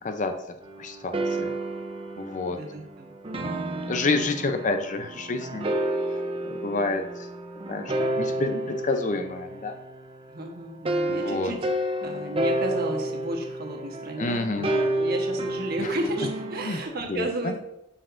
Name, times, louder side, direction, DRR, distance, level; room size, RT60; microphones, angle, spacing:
voice 1, 0.0-0.3 0.8-1.5 2.2-2.6 3.4-3.6 3.8-5.7 6.4-7.3 7.7-9.7 11.1-11.5 14.2-14.7 16.6-16.8 17.1-17.5, left 3 dB, 45° left, 7 dB, 0.6 m, -29 dB
sound 1, 0.6-10.3 10.8-16.8, right 1 dB, 30° right, 0.6 m, -30 dB
voice 2, 2.5-3.1 3.5-4.3 10.3-11.6 12.0-17.6, right 1 dB, 55° right, 2 dB, 1.2 m, -33 dB
7.7 x 6.4 x 2.6 m, 0.83 s
head